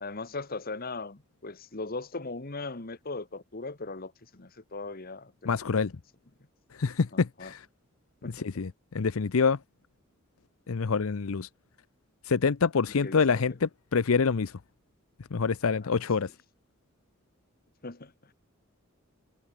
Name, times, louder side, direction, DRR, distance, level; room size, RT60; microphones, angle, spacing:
voice 1, 0.0-5.8 7.1-7.5 8.2-8.6 13.0-13.4 15.8-16.0 17.8-18.3, left 3 dB, 45° left, 1.4 m, -39 dB
voice 2, 5.5-5.9 6.8-7.6 8.3-9.6 10.7-11.5 12.3-14.5 15.3-16.3, left 5 dB, 80° left, 0.6 m, -26 dB
head